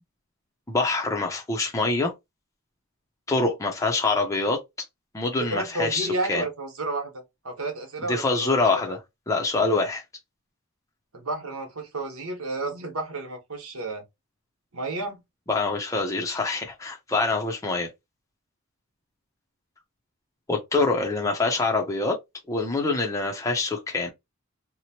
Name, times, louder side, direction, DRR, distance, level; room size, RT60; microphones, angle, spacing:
voice 1, 0.7-2.1 3.3-4.6 5.1-6.4 8.1-9.0 9.3-10.0 15.5-17.9 20.5-22.2 22.5-24.1, left 3 dB, 15° left, 0.5 m, -25 dB
voice 2, 5.5-9.0 11.1-14.0 14.7-15.2, right 2 dB, 75° right, 1.1 m, -32 dB
2.9 x 2.0 x 2.8 m
head